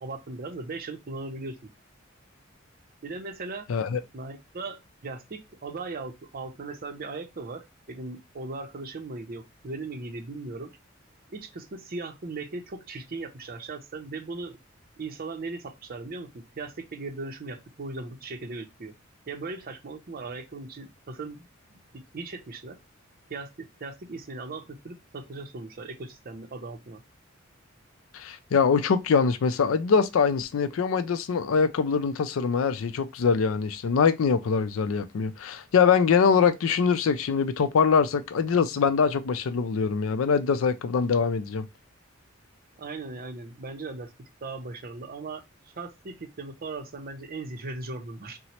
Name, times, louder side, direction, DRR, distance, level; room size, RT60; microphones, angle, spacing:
voice 1, 0.0-1.6 3.0-3.7 4.1-10.7 11.3-14.6 15.0-18.9 19.3-21.8 22.1-22.8 23.3-27.0 42.8-45.4 45.8-48.4, right 3 dB, 45° right, 0.5 m, -38 dB
voice 2, 3.7-4.0 28.1-41.7, left 5 dB, 85° left, 0.4 m, -23 dB
2.9 x 2.0 x 4.1 m
head